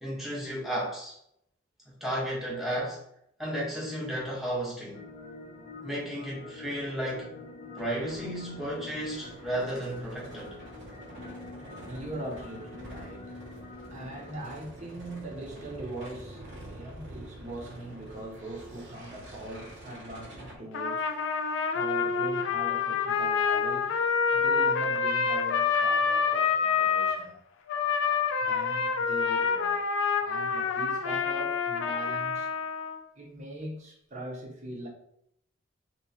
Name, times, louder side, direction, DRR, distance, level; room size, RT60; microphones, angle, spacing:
voice 1, 0.0-1.2 2.0-3.0 3.4-5.0 5.8-7.3 7.8-10.6, right 1 dB, ahead, 0.9 m, -33 dB
sound 1, 4.9-14.4, left 2 dB, 30° left, 0.6 m, -46 dB
sound 2, 7.8-20.6, right 1 dB, 65° right, 0.9 m, -47 dB
voice 2, 11.1-21.1 21.7-24.0 24.3-27.4 28.4-29.8 30.2-32.5 33.1-34.9, right 1 dB, 35° right, 0.8 m, -41 dB
Trumpet, 20.7-27.2 27.7-33.0, left 6 dB, 75° left, 0.4 m, -27 dB
3.0 x 2.9 x 2.7 m
head